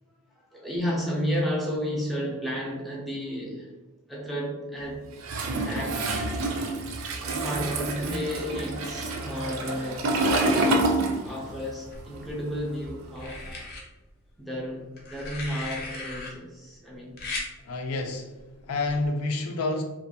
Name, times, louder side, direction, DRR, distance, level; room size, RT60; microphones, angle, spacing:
voice 1, 0.3-3.7 4.1-5.1 5.6-6.0 7.2-13.6 14.4-17.2, equal, ahead, -3 dB, 0.4 m, -32 dB
Toilet flush, 5.2-11.7 11.9-13.5, right 2 dB, 65° right, 0.4 m, -28 dB
sound 1, 11.9-12.6 13.2-13.8 15.0-16.3 17.2-17.5 18.9-19.1, left 3 dB, 45° left, 0.6 m, -36 dB
voice 2, 17.7-18.3 18.6-19.8, left 2 dB, 90° left, 3 dB, 0.4 m, -28 dB
2.4 x 2.3 x 2.7 m, 1.1 s
head